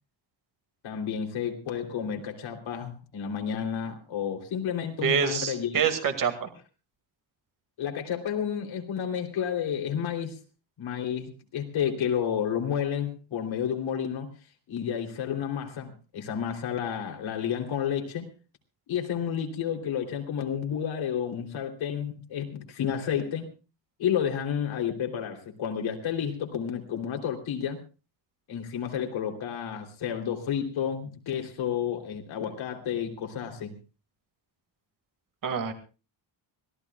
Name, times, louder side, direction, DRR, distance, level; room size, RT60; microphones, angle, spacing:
voice 1, 0.8-5.7 7.8-10.4 10.8-14.3 14.7-18.3 18.9-23.5 24.0-27.8 28.5-33.7, left 8 dB, 70° left, 3 dB, 3.4 m, -31 dB
voice 2, 5.0-6.5 35.4-35.7, right 7 dB, 40° right, 6 dB, 2.2 m, -26 dB
25.5 x 17.5 x 2.4 m, 0.34 s
cardioid pair, 155°, 48 cm